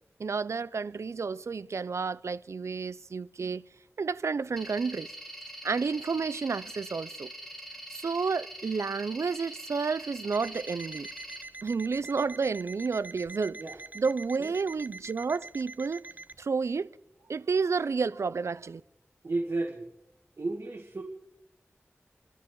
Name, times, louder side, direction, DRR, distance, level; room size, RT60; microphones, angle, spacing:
voice 1, 0.2-3.6 4.0-5.1 5.6-7.3 7.9-11.1 11.6-13.6 13.9-16.0 16.4-16.9 17.3-18.8, right 5 dB, 90° right, 0.5 m, -30 dB
sound 1, 4.6-11.4, equal, 5° left, 4.1 m, -44 dB
Alarm, 10.3-16.4, right 2 dB, 40° right, 0.6 m, -45 dB
voice 2, 19.2-19.9 20.4-21.0, right 2 dB, 70° right, 1.9 m, -32 dB
28.0 x 12.5 x 3.9 m
wide cardioid pair, 45°, 5 cm